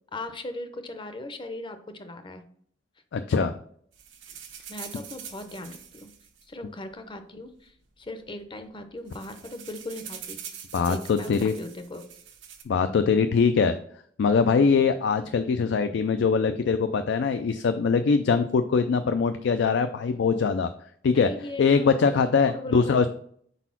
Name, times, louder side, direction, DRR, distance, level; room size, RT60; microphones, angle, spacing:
voice 1, 0.1-2.4 4.7-6.1 6.5-10.6 10.9-12.1 21.1-21.9 22.5-23.1, left 1 dB, 25° left, 9 dB, 0.6 m, -39 dB
voice 2, 3.1-3.5 10.7-11.5 12.7-13.7 14.2-20.7 21.0-21.3 21.6-23.1, left 5 dB, 65° left, 9 dB, 0.4 m, -22 dB
sound 1, 3.9-7.2 8.0-8.1 8.3-8.5 8.8-12.6, right 8 dB, 90° right, 1.0 m, -44 dB
4.5 x 4.1 x 5.7 m, 0.62 s
head